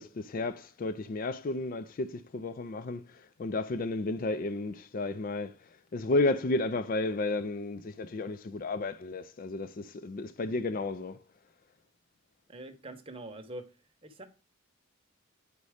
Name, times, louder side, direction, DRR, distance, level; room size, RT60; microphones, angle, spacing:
voice 1, 0.0-11.2, left 2 dB, 40° left, 0.3 m, -32 dB
voice 2, 12.5-13.6 14.0-14.2, right 1 dB, 25° right, 0.9 m, -43 dB
9.4 x 4.1 x 4.9 m
head